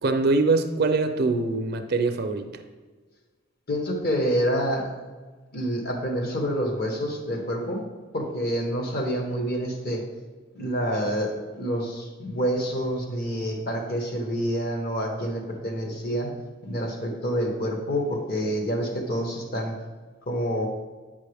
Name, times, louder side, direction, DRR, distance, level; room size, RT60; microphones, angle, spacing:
voice 1, 0.0-2.5, right 3 dB, 55° right, 7 dB, 0.5 m, -23 dB
voice 2, 3.7-4.9 5.5-7.8 8.1-10.1 10.5-16.3 16.6-19.8 20.3-20.7, equal, 50° left, 2 dB, 1.2 m, -27 dB
8.8 x 5.5 x 3.4 m, 1.4 s
head